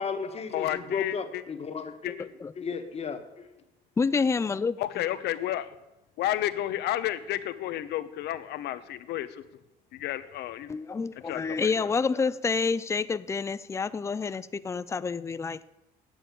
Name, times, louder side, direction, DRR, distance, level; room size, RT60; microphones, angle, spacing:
voice 1, 0.0-2.3 2.6-3.5, left 5 dB, 40° left, 1.5 m, -34 dB
voice 2, 0.5-1.4 2.0-2.4 4.8-5.7 6.2-9.4 9.9-10.7 11.3-11.9, left 13 dB, 80° left, 0.9 m, -31 dB
voice 3, 4.0-4.8 10.7-15.6, left 5 dB, 15° left, 0.4 m, -28 dB
9.0 x 7.9 x 9.3 m
cardioid pair, 110°, 17 cm